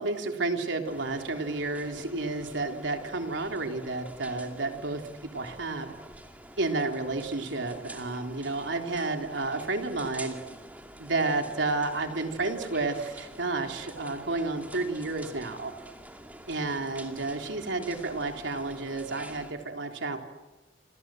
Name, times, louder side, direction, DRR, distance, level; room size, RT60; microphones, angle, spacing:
voice 1, 0.0-5.9 6.6-10.4 11.0-15.7 16.5-20.2, right 3 dB, 85° right, 3 dB, 3.7 m, -31 dB
sound 1, 0.8-19.5, right 1 dB, 10° right, 2.5 m, -47 dB
28.0 x 27.0 x 7.8 m, 1.1 s
head